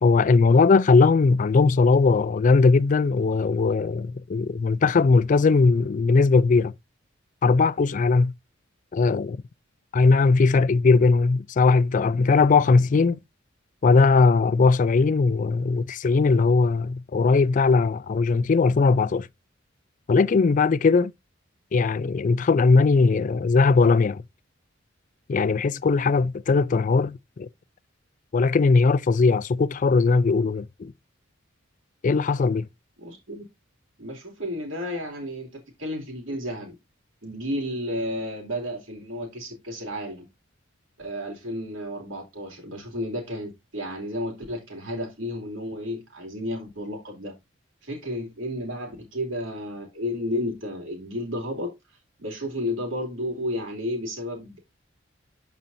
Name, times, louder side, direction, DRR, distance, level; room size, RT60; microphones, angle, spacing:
voice 1, 0.0-6.7 7.4-8.3 8.9-9.4 9.9-13.2 13.8-19.3 20.1-21.1 21.7-24.2 25.3-27.5 28.3-30.9 32.0-32.7, left 4 dB, 40° left, 0.4 m, -19 dB
voice 2, 33.0-33.4 34.0-36.7 37.2-40.3 41.0-47.3 47.8-51.7 52.2-54.6, left 1 dB, 75° right, 2.7 m, -32 dB
12.0 x 4.3 x 2.6 m
head